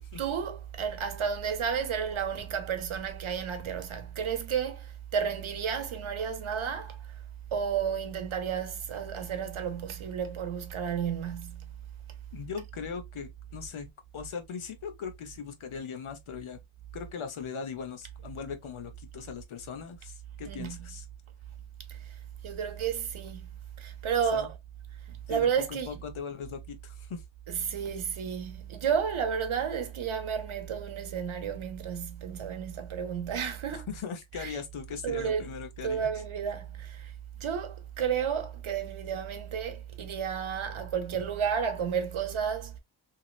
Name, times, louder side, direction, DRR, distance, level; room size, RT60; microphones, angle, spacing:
voice 1, 0.1-7.2 7.5-11.7 20.4-20.9 21.9-22.2 22.4-23.5 23.8-24.6 25.1-26.0 27.5-33.9 34.3-34.6 35.0-35.4 35.8-37.1 37.4-42.8, right 7 dB, 85° right, 0.9 m, -32 dB
voice 2, 12.3-16.6 16.9-21.0 24.3-24.5 25.3-27.2 33.7-36.1, left 6 dB, 90° left, 0.8 m, -39 dB
3.1 x 2.8 x 2.3 m
wide cardioid pair, 105°, 48 cm